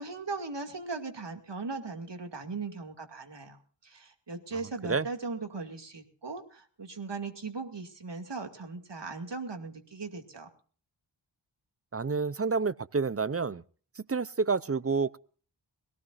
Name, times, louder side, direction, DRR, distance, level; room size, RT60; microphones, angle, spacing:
voice 1, 0.0-10.5, right 4 dB, 60° right, 4 dB, 2.4 m, -38 dB
voice 2, 11.9-13.6 14.1-15.2, right 4 dB, 30° right, 18 dB, 0.6 m, -29 dB
22.5 x 17.5 x 2.6 m, 0.43 s
wide cardioid pair, 60°, 48 cm